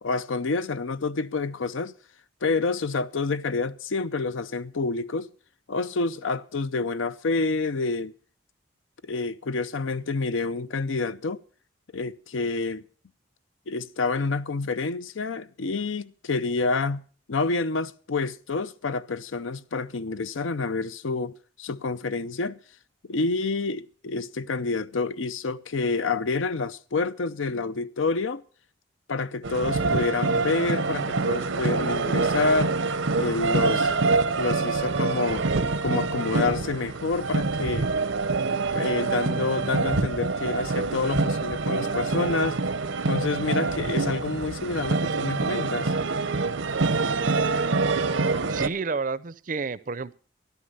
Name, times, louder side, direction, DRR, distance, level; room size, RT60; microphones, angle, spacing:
voice 1, 0.0-1.9 2.4-5.3 5.7-8.1 9.0-11.4 11.9-12.8 13.7-17.0 17.3-22.6 23.1-28.4 29.1-32.8 33.1-33.9 34.3-35.5 35.8-37.9 38.7-42.6 43.1-45.9, left 3 dB, 80° left, 0.6 m, -28 dB
sound 1, 29.4-48.7, right 3 dB, 80° right, 0.8 m, -26 dB
voice 2, 48.5-50.1, right 4 dB, 40° right, 0.5 m, -30 dB
13.5 x 11.5 x 5.4 m
head